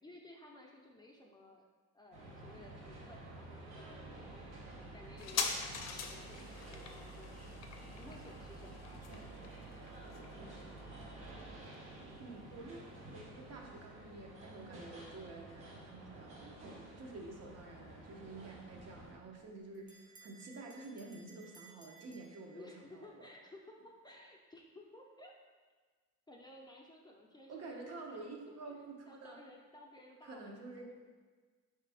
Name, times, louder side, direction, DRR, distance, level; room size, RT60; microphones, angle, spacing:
voice 1, 0.0-1.7 1.9-4.5 4.9-7.6 8.0-9.4 22.5-25.3 26.3-27.8 28.1-28.3 29.1-30.8, left 1 dB, 15° left, -1 dB, 0.5 m, -56 dB
sound 1, 2.1-19.1, right 2 dB, 85° right, 1.1 m, -51 dB
sound 2, 5.2-12.3 12.5-12.6, left 5 dB, 60° left, 0.5 m, -43 dB
voice 2, 12.2-23.1 27.5-29.4 30.2-31.0, right 3 dB, 55° right, 1 dB, 0.8 m, -49 dB
Bell, 19.2-23.0, right 5 dB, 25° right, 0.7 m, -61 dB
4.2 x 3.2 x 3.4 m, 1.4 s
cardioid pair, 90°, 30 cm